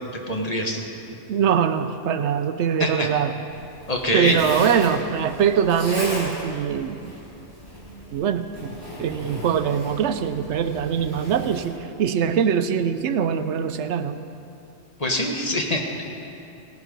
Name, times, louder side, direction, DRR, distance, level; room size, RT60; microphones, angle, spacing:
voice 1, 0.3-0.8 2.8-3.1 3.9-4.4 15.0-16.0, left 1 dB, 35° left, 1 dB, 1.3 m, -24 dB
voice 2, 1.3-3.4 4.1-7.0 8.1-8.7 9.0-14.2, right 8 dB, 75° right, 10 dB, 0.9 m, -23 dB
Zipper (clothing), 3.5-11.7, equal, 20° left, 3.2 m, -35 dB
17.0 x 11.0 x 5.2 m, 2.8 s
omnidirectional pair, 1.2 m